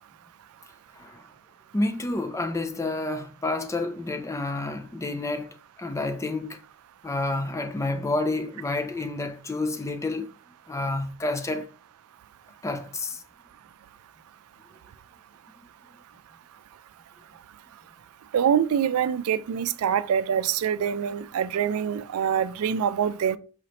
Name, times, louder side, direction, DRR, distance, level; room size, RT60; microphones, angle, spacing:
voice 1, 1.7-5.5 5.8-6.6 7.0-10.3 10.7-11.7 12.6-13.2, left 2 dB, 15° left, 0.3 m, -29 dB
voice 2, 18.3-23.4, right 8 dB, 90° right, 0.3 m, -25 dB
4.9 x 3.1 x 2.8 m
head